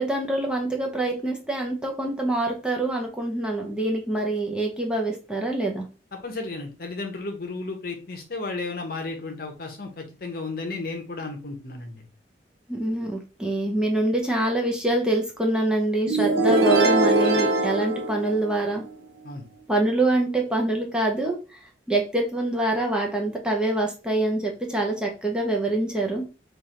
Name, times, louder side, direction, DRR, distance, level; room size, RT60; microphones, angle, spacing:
voice 1, 0.0-5.8 12.7-18.8 19.7-21.6 21.9-26.3, right 2 dB, 5° right, 0 dB, 0.8 m, -25 dB
voice 2, 6.1-12.0 19.2-19.4, left 3 dB, 55° left, 4 dB, 1.0 m, -33 dB
sound 1, 16.1-18.9, right 2 dB, 70° right, 0.7 m, -22 dB
3.4 x 2.5 x 4.3 m, 0.32 s
head